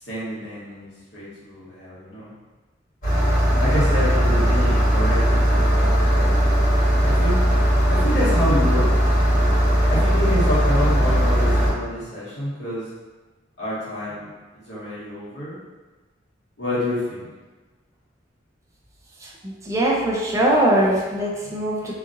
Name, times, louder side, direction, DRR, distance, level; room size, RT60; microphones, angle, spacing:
voice 1, 0.0-2.3 3.6-6.4 7.0-7.4 7.9-8.9 9.9-12.9 13.6-14.3 14.7-15.6 16.6-17.3, left 1 dB, 65° left, -9 dB, 1.2 m, -28 dB
Engine starting, 3.0-11.7, equal, 50° left, 1.3 m, -18 dB
voice 2, 19.2-21.9, right 1 dB, 15° right, -3 dB, 0.4 m, -21 dB
2.9 x 2.4 x 2.5 m, 1.3 s
head